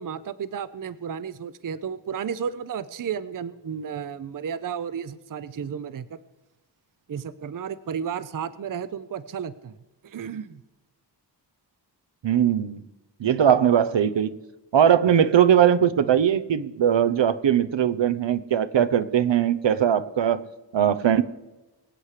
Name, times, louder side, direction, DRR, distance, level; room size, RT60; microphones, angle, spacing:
voice 1, 0.0-6.2 7.1-9.7 10.0-10.6, right 7 dB, 45° right, 15 dB, 0.6 m, -33 dB
voice 2, 12.2-12.8 13.2-14.3 14.7-20.4 20.7-21.2, right 9 dB, 75° right, 14 dB, 0.8 m, -20 dB
24.0 x 8.2 x 4.9 m, 1.1 s
wide cardioid pair, 130°, 44 cm